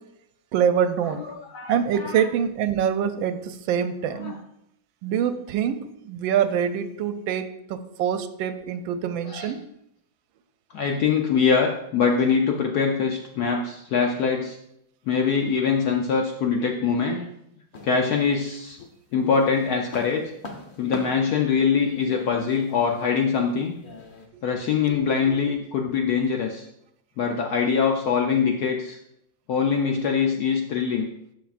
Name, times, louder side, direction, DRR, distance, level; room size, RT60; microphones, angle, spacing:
voice 1, 0.5-1.2 1.7-4.4 5.0-9.6 25.3-25.4, right 8 dB, 85° right, 10 dB, 1.3 m, -25 dB
voice 2, 1.1-2.3 4.2-4.3 9.2-9.5 10.7-14.6 15.1-17.3 17.8-18.8 19.1-20.3 20.8-23.8 24.4-26.7 27.2-29.0 29.5-31.1, left 6 dB, 65° left, 2 dB, 1.0 m, -23 dB
sound 1, 17.7-18.7 19.1-24.3, left 3 dB, 45° left, 0.7 m, -42 dB
12.5 x 5.8 x 2.5 m, 0.79 s
omnidirectional pair, 2.1 m